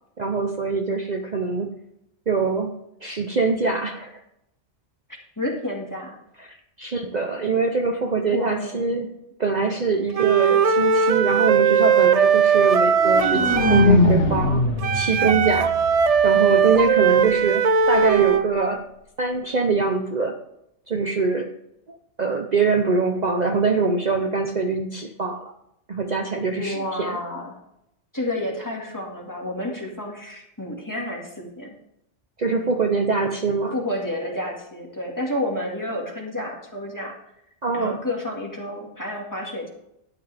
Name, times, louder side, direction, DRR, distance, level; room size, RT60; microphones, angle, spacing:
voice 1, 0.2-1.7 2.3-2.7 3.0-4.2 6.4-9.1 9.4-14.6 14.9-15.7 16.2-18.9 19.2-20.4 20.9-21.5 21.9-25.5 25.9-27.2 32.4-33.8 37.6-38.0, right 4 dB, 40° right, 4 dB, 0.9 m, -23 dB
voice 2, 5.4-6.2 8.3-9.0 26.5-27.6 28.1-31.8 33.7-37.2 37.7-39.7, left 1 dB, 15° left, -1 dB, 2.1 m, -30 dB
Wind instrument woodwind instrument, 10.1-14.0 14.8-18.5, right 6 dB, 65° right, 0.3 m, -19 dB
sound 1, 12.7-16.7, left 2 dB, 75° left, 2.0 m, -22 dB
12.5 x 9.6 x 3.5 m, 0.80 s
omnidirectional pair, 1.2 m